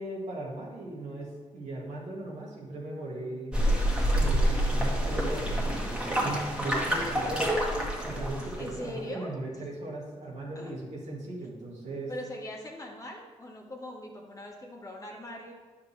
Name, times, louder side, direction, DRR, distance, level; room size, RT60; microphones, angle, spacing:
voice 1, 0.0-3.5 4.1-7.6 8.0-12.1, right 2 dB, 80° right, -3 dB, 2.0 m, -38 dB
sound 1, 3.5-8.8, equal, 10° right, 1.8 m, -27 dB
voice 2, 8.6-9.6 10.5-10.7 12.1-15.5, left 1 dB, 30° left, -1 dB, 1.6 m, -41 dB
9.2 x 5.9 x 3.3 m, 1.3 s
cardioid pair, 75°, 12 cm